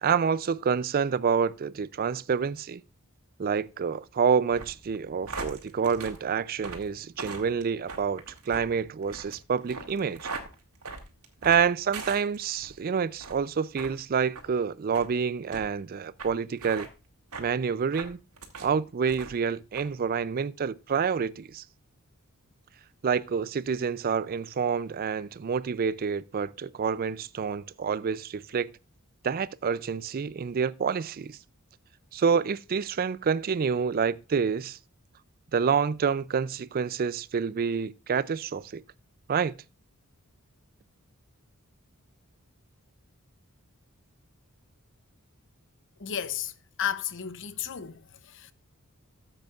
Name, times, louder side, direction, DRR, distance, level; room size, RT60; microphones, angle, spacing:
voice 1, 0.0-2.8 3.4-10.3 11.4-16.9 17.4-18.2 18.6-21.6 23.0-28.7 29.2-31.4 32.1-34.8 35.5-38.8 39.3-39.5, right 6 dB, 40° right, 0.4 m, -28 dB
sound 1, 4.5-12.7 13.1-13.4 13.7-13.9 14.3-14.5 14.9-15.1 15.5-15.6 16.2-16.3 16.6-16.9 17.3-17.5 17.9-18.7 19.1-19.4 19.7-19.9, right 4 dB, 85° right, 2.1 m, -40 dB
voice 2, 46.0-46.5 46.8-48.5, left 9 dB, 60° left, 0.7 m, -33 dB
13.5 x 7.8 x 2.4 m
head